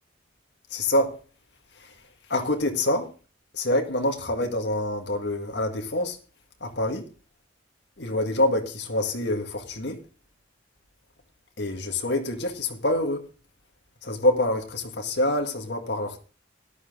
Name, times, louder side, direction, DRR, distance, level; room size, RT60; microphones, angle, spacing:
voice 1, 0.7-1.2 1.8-1.9 2.3-3.1 3.5-6.2 6.6-7.0 8.0-10.0 11.6-13.2 14.0-16.2, left 1 dB, 60° left, 1.9 m, -26 dB
12.5 x 11.5 x 3.8 m
head